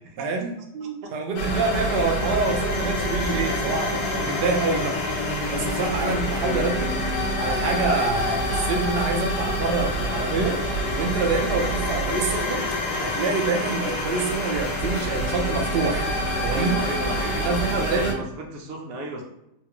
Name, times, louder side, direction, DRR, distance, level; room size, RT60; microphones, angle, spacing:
voice 1, 0.2-5.0 5.5-6.9 7.4-10.6 10.9-12.6 13.0-16.1 16.4-16.8 17.4-18.2, right 4 dB, 90° right, 1 dB, 0.5 m, -26 dB
sound 1, 1.4-18.1, left 1 dB, 80° left, 1.3 m, -26 dB
voice 2, 16.5-19.2, right 2 dB, 70° right, 1 dB, 1.0 m, -34 dB
3.2 x 2.3 x 2.9 m, 0.86 s
omnidirectional pair, 1.7 m